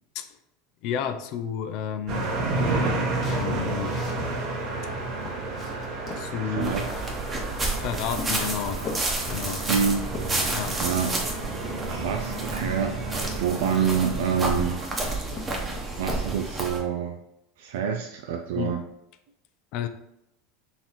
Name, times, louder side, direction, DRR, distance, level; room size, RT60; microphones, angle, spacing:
voice 1, 0.8-3.9 6.2-6.7 7.6-8.8 9.3-9.7 10.5-10.8 15.3-15.4 15.7-15.8 18.6-18.7 19.7-19.9, left 8 dB, 60° left, 9 dB, 0.4 m, -32 dB
sound 1, 2.1-14.8, right 3 dB, 50° right, 1.0 m, -31 dB
sound 2, 3.1-4.3 4.8-4.9 5.2-6.3 6.7-7.7 8.1-9.1 9.7-10.5 10.8-11.3 11.6-11.8 12.9-13.0 13.2-14.3 14.7-15.1 15.3-15.9, left 4 dB, 30° left, 0.9 m, -40 dB
sound 3, 6.6-16.8, right 2 dB, 20° right, 1.0 m, -30 dB
voice 2, 6.6-6.9 9.7-10.1 10.8-11.2 11.9-14.9 16.0-17.2 17.6-18.8, right 7 dB, 75° right, 4 dB, 0.4 m, -27 dB
3.9 x 2.9 x 4.1 m, 0.83 s
supercardioid pair, 120°, 0 cm